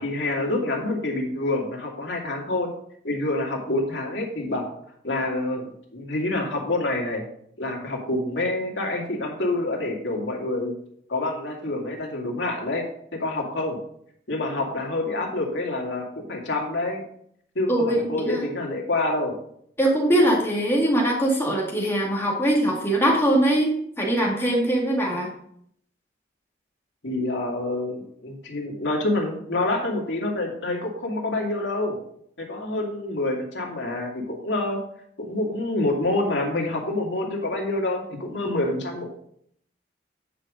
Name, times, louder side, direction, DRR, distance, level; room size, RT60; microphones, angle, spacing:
voice 1, 0.0-2.7 3.0-4.6 5.0-5.6 5.9-7.2 7.6-10.7 11.1-12.9 13.2-13.8 14.3-17.0 17.5-19.4 27.0-32.0 32.4-34.8 35.2-39.1, left 2 dB, 80° left, -1 dB, 2.4 m, -27 dB
voice 2, 17.7-18.4 19.8-25.3, right 1 dB, 15° left, -2 dB, 2.0 m, -22 dB
9.6 x 5.2 x 5.1 m, 0.68 s
head